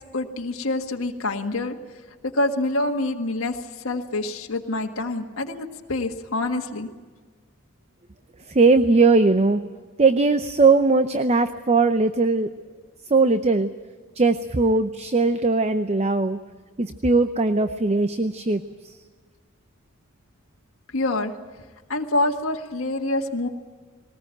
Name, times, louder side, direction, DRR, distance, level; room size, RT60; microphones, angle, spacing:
voice 1, 0.1-1.7 2.2-6.9 20.9-21.3 21.9-23.5, left 2 dB, 70° left, 2 dB, 1.6 m, -26 dB
voice 2, 8.5-9.6 10.0-12.5 13.1-13.7 14.1-16.4 16.8-19.0, right 3 dB, 30° right, 10 dB, 0.7 m, -19 dB
20.5 x 19.0 x 8.9 m, 1.5 s
head